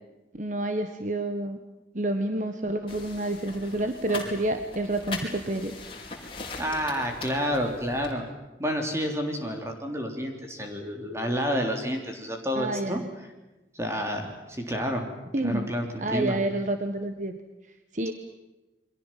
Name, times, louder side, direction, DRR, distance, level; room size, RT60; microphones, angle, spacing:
voice 1, 0.4-1.6 1.9-5.8 12.5-13.0 15.3-15.7 16.0-17.4 17.9-18.1, right 1 dB, 45° right, 7 dB, 1.5 m, -29 dB
sound 1, 2.9-8.1, left 3 dB, 30° left, 5.0 m, -40 dB
voice 2, 6.6-8.2 8.6-13.0 13.7-15.0 15.4-16.4, equal, 15° right, 3 dB, 3.5 m, -29 dB
29.5 x 23.5 x 7.6 m, 1.1 s
head